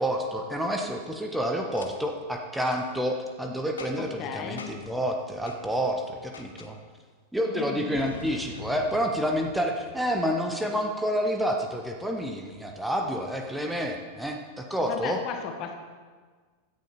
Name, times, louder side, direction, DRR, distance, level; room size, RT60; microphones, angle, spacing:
voice 1, 0.0-6.8 7.3-15.2, equal, 5° right, 2 dB, 1.3 m, -29 dB
Boom, 1.7-1.9 2.6-2.8 3.8-4.2 4.6-4.9 5.5-5.6 6.3-6.7 7.9-10.6, left 4 dB, 70° left, 1.2 m, -44 dB
voice 2, 4.0-4.7 7.5-8.0 14.8-15.7, left 8 dB, 40° left, 5 dB, 1.5 m, -36 dB
16.0 x 10.5 x 4.4 m, 1.5 s
figure-of-eight pair, 90°, 0 cm